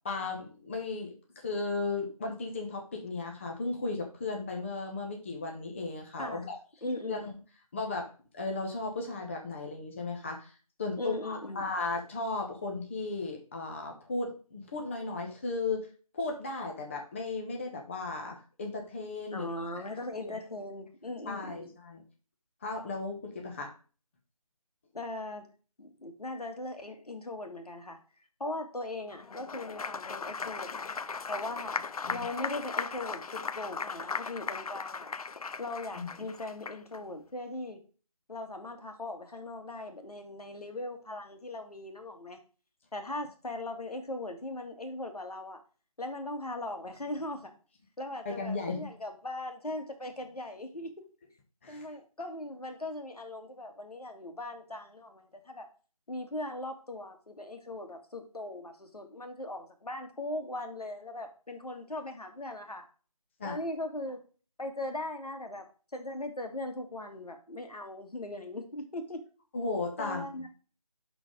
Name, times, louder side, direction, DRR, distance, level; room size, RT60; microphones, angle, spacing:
voice 1, 0.0-6.6 7.1-7.3 7.7-10.5 10.8-15.9 16.1-19.5 19.8-19.9 20.2-20.4 21.3-22.0 22.6-23.7 32.0-32.2 36.0-36.1 48.2-48.9 51.6-51.9 63.4-63.6 69.5-70.3, left 3 dB, 20° left, 1 dB, 0.9 m, -35 dB
voice 2, 6.8-7.2 11.0-11.6 19.3-21.7 24.9-25.5 25.8-28.0 28.4-30.9 31.3-31.8 32.1-35.1 35.6-37.8 38.3-42.4 42.9-45.6 46.0-47.5 48.0-50.9 51.7-55.7 56.1-62.8 63.4-64.2 64.6-65.6 65.9-69.2 70.0-70.5, left 2 dB, 90° left, 5 dB, 2.1 m, -39 dB
Applause, 29.2-37.0, left 5 dB, 75° left, 0.5 m, -37 dB
11.5 x 4.1 x 3.8 m, 0.37 s
figure-of-eight pair, 165°, 19 cm